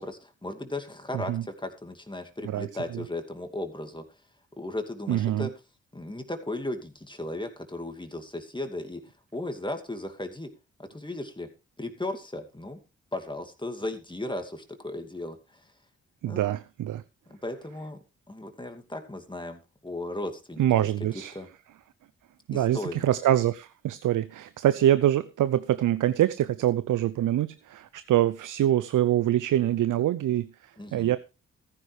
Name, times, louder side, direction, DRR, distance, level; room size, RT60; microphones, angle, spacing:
voice 1, 0.0-4.2 4.6-5.5 5.9-10.5 10.8-11.5 11.8-12.8 13.1-15.7 16.3-16.4 17.3-18.0 18.3-20.6 21.3-21.5 22.5-23.1 30.8-31.2, left 1 dB, 15° left, 2.4 m, -36 dB
voice 2, 5.1-5.5 16.2-17.0 20.6-21.3 22.5-31.2, right 12 dB, 65° right, 0.6 m, -25 dB
14.5 x 10.0 x 3.3 m
hypercardioid pair, 40°, 33 cm